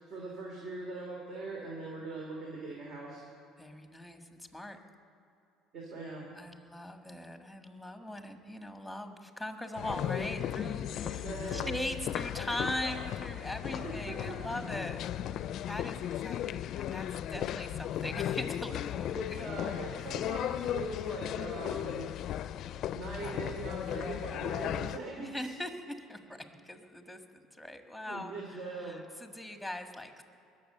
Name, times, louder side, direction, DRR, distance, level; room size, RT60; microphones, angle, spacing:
voice 1, 0.1-3.2 5.7-6.3 11.0-11.8 13.6-14.6 17.3-17.5 19.1-22.0 22.9-25.5 28.0-29.0, right 3 dB, 50° right, -3 dB, 3.3 m, -41 dB
voice 2, 3.6-4.8 6.3-15.0 15.7-19.5 25.2-30.2, left 1 dB, ahead, 5 dB, 1.6 m, -41 dB
sound 1, 9.8-25.0, left 11 dB, 60° left, 0.4 m, -36 dB
20.5 x 7.4 x 6.7 m, 2.7 s
supercardioid pair, 95°, 0 cm